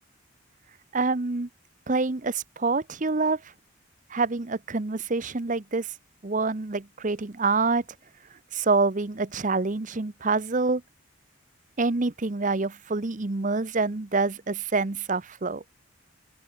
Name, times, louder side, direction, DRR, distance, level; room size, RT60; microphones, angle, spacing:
voice 1, 0.9-1.5 1.9-3.5 4.1-5.9 6.2-7.8 8.5-10.8 11.8-15.6, right 3 dB, 40° right, 0.8 m, -26 dB
open air
head